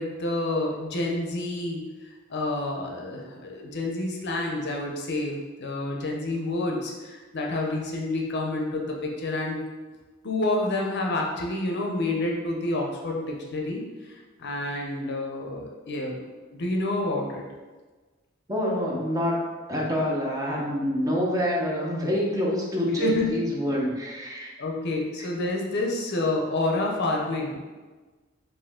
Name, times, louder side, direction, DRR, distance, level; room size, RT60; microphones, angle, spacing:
voice 1, 0.0-1.8 2.3-9.6 10.2-16.2 16.5-17.4 23.0-23.4 24.6-27.6, left 2 dB, 55° left, 0 dB, 0.6 m, -29 dB
voice 2, 18.5-19.4 19.7-24.5 25.2-25.3, equal, 15° right, -3 dB, 0.8 m, -26 dB
4.9 x 2.7 x 3.6 m, 1.3 s
head